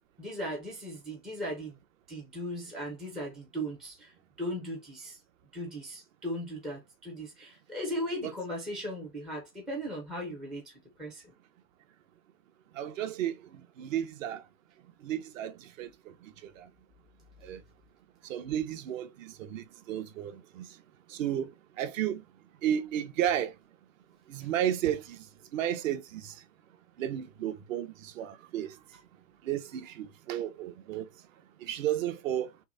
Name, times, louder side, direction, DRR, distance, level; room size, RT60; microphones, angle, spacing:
voice 1, 0.2-1.8 2.1-5.2 5.5-11.3, equal, ahead, 0.4 m, -37 dB
voice 2, 12.7-14.4 15.0-16.7 17.4-17.6 18.2-20.7 21.1-22.2 22.6-23.5 24.3-25.3 25.5-26.4 27.0-28.8 29.4-31.1 31.6-32.5, right 10 dB, 55° right, 1.0 m, -33 dB
5.9 x 2.1 x 3.8 m
supercardioid pair, 155°, 48 cm